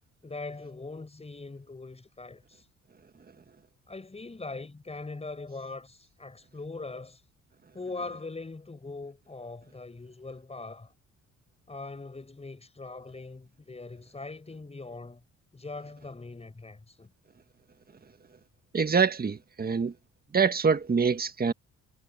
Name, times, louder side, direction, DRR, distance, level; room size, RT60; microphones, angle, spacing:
voice 1, 0.2-2.7 3.9-7.2 7.7-10.9 11.7-15.2 15.5-17.1, left 3 dB, 20° left, 6.6 m, -41 dB
voice 2, 18.7-19.9 20.3-21.5, right 5 dB, 30° right, 1.7 m, -25 dB
cardioid pair, 90°, 30 cm